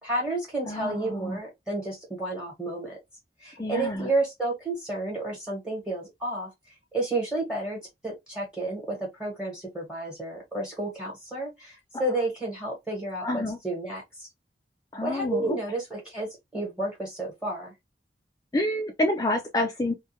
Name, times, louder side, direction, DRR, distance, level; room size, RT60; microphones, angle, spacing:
voice 1, 0.0-3.0 3.4-6.5 6.9-14.3 15.0-17.7, right 2 dB, 5° right, 1.1 m, -31 dB
voice 2, 0.7-1.4 3.6-4.1 13.2-13.6 14.9-15.6 18.5-19.9, left 1 dB, 20° left, 0.3 m, -28 dB
2.2 x 2.2 x 2.7 m
head